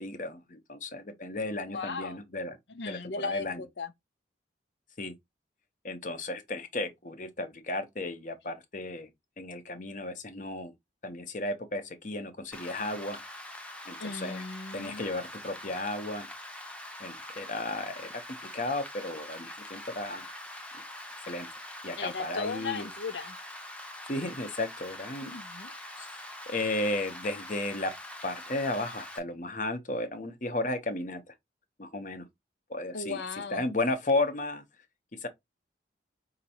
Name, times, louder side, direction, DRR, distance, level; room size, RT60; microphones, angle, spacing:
voice 1, 0.0-2.6 2.9-3.6 5.0-5.1 5.8-9.1 9.4-10.7 11.0-13.2 13.9-14.4 14.7-16.3 17.0-20.3 21.3-21.5 21.8-22.9 24.1-25.3 26.0-26.1 26.5-27.9 28.2-31.3 31.8-32.2 32.7-33.2 33.5-34.6 35.2-35.3, left 2 dB, 45° left, 0.9 m, -34 dB
voice 2, 1.7-2.2 2.7-3.9 14.0-15.1 22.0-23.4 25.2-25.7 32.9-33.6, left 4 dB, 75° left, 0.7 m, -37 dB
Rain, 12.5-29.2, left 1 dB, 5° left, 0.7 m, -44 dB
5.2 x 2.9 x 2.9 m
head